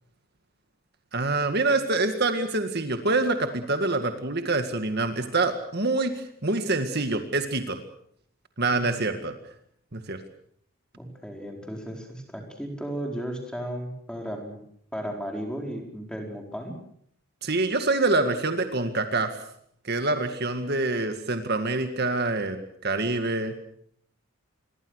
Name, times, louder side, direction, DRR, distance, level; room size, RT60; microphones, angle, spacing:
voice 1, 1.1-7.8 8.6-9.4 9.9-10.2 17.4-19.3 19.8-22.6 22.8-23.5, right 3 dB, 45° right, 7 dB, 2.0 m, -26 dB
voice 2, 11.0-14.6 14.9-16.7, equal, 5° left, 2 dB, 4.6 m, -35 dB
27.5 x 22.5 x 6.5 m, 0.68 s
head